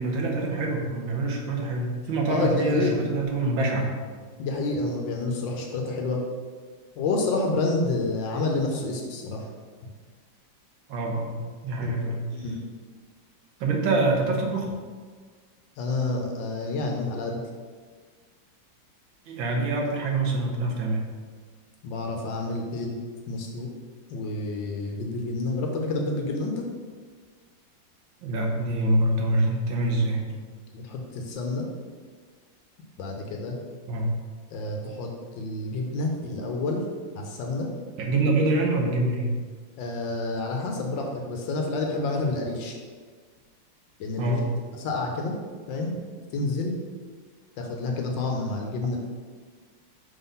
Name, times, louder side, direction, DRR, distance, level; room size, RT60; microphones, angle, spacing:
voice 1, 0.0-4.0 10.9-12.2 13.6-14.7 19.3-21.0 28.2-30.2 33.9-34.1 38.0-39.3 44.2-44.5, right 2 dB, 85° right, 1 dB, 1.8 m, -25 dB
voice 2, 2.3-3.0 4.4-6.2 7.0-9.4 11.8-12.6 15.8-17.4 21.8-23.0 23.3-23.7 24.1-26.7 30.7-31.7 33.0-33.5 34.5-35.1 35.3-36.8 37.1-37.7 39.8-42.7 44.0-44.4 44.8-45.3 45.7-46.0 46.3-46.7 47.6-49.0, left 2 dB, 75° left, 1 dB, 1.5 m, -29 dB
5.9 x 3.8 x 5.5 m, 1.5 s
omnidirectional pair, 2.1 m